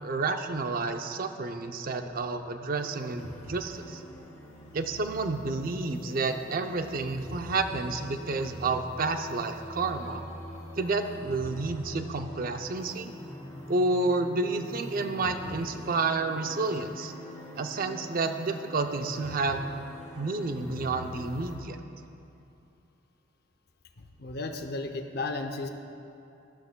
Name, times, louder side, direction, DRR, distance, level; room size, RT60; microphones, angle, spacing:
voice 1, 0.0-4.0 4.7-10.2 10.8-13.1 13.7-17.1 17.6-19.8 20.2-21.8, right 3 dB, 50° right, 7 dB, 0.5 m, -30 dB
sound 1, 2.7-21.5, equal, 15° left, 2.4 m, -44 dB
voice 2, 24.0-25.7, left 3 dB, 55° left, 6 dB, 0.6 m, -34 dB
13.0 x 12.0 x 2.2 m, 2.7 s
head